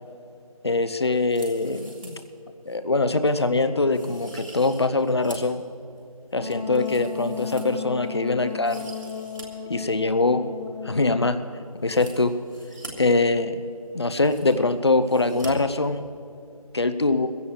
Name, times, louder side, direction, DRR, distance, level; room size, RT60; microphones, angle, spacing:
voice 1, 0.6-2.2 2.7-5.6 6.3-8.9 9.7-10.4 10.8-11.4 11.8-12.3 13.0-13.6 13.9-16.0 16.7-17.3, left 3 dB, 45° left, 10 dB, 0.8 m, -23 dB
sound 1, 1.2-2.3 2.7-2.8 3.3-3.5 3.9-5.6 6.0-8.1 8.5-9.4 9.7-9.8 11.8-12.9 13.7-13.8 14.0-14.7 15.0-15.5 15.8-15.9, right 2 dB, 60° right, 3.1 m, -45 dB
Wind instrument woodwind instrument, 6.4-11.2, left 6 dB, 10° left, 0.7 m, -35 dB
21.0 x 16.0 x 3.3 m, 2.5 s
figure-of-eight pair, 170°, 19 cm